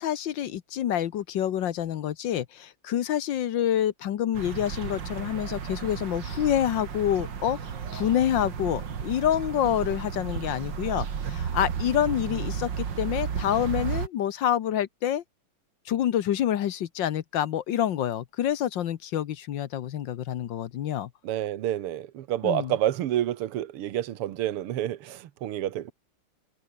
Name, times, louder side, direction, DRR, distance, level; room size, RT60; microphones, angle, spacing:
voice 1, 0.0-7.6 7.9-15.2 15.9-21.1 22.4-22.7, left 10 dB, 65° left, 1.5 m, -27 dB
sound 1, 4.3-14.1, right 7 dB, 55° right, 2.5 m, -33 dB
voice 2, 21.2-25.9, right 12 dB, 85° right, 2.0 m, -29 dB
omnidirectional pair, 2.4 m